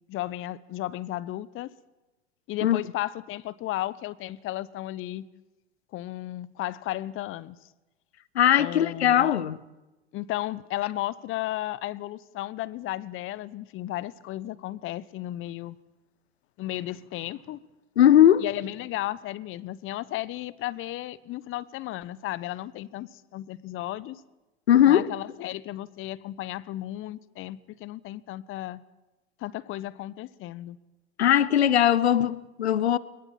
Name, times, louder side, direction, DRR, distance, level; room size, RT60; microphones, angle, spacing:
voice 1, 0.1-1.7 2.5-5.3 5.9-7.6 8.6-9.3 10.1-15.8 16.6-17.6 18.4-24.2 24.8-28.8 29.4-30.8, left 15 dB, 40° left, 0.9 m, -34 dB
voice 2, 8.3-9.6 18.0-18.4 24.7-25.1 31.2-33.0, left 11 dB, 80° left, 0.9 m, -19 dB
22.0 x 21.0 x 7.4 m
hypercardioid pair, 85°, 32 cm